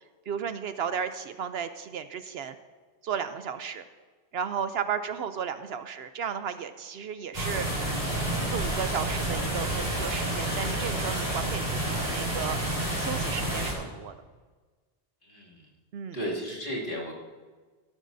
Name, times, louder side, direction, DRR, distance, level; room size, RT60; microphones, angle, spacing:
voice 1, 0.3-2.6 3.0-3.8 4.3-7.7 8.5-12.6 13.0-14.1 15.9-16.2, right 7 dB, 70° right, 10 dB, 0.8 m, -34 dB
sound 1, 7.3-13.7, right 1 dB, 40° right, 4.0 m, -29 dB
voice 2, 15.2-15.7 16.1-17.1, equal, 50° left, -5 dB, 2.7 m, -34 dB
15.5 x 12.5 x 2.7 m, 1.4 s
omnidirectional pair, 1.1 m